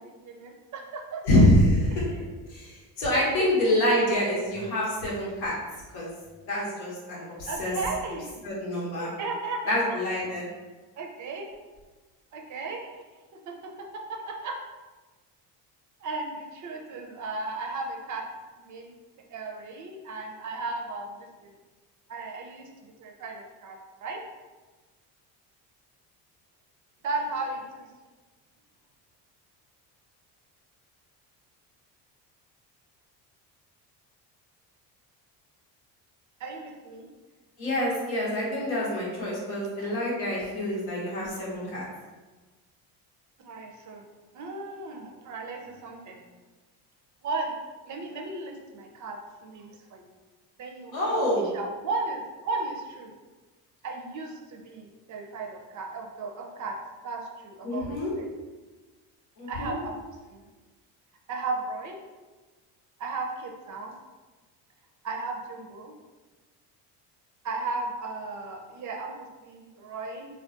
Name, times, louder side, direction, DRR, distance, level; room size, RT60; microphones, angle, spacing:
voice 1, 0.0-1.4 1.9-2.0 3.4-4.2 7.5-8.4 9.0-9.8 11.0-11.5 12.3-12.8 13.5-13.7 14.1-14.6 16.0-18.3 18.6-18.9 19.3-21.2 21.4-21.5 22.1-22.7 23.0-24.2 27.0-27.9 36.4-37.1 39.8-40.0 43.4-44.0 44.3-46.2 47.2-47.5 47.8-50.1 50.6-51.2 51.5-53.1 53.8-56.8 57.0-58.3 59.5-60.0 60.3-60.5 61.3-62.0 63.0-64.0 65.0-65.9 67.4-70.3, right 3 dB, 40° right, 2 dB, 0.4 m, -35 dB
voice 2, 1.2-2.1 2.5-5.6 5.9-6.1 6.5-7.7 8.4-9.1 9.7-10.5 37.6-41.8 50.9-51.4 57.6-58.1 59.4-59.8, left 1 dB, 85° left, -5 dB, 1.0 m, -26 dB
2.3 x 2.2 x 2.5 m, 1.3 s
supercardioid pair, 75°, 46 cm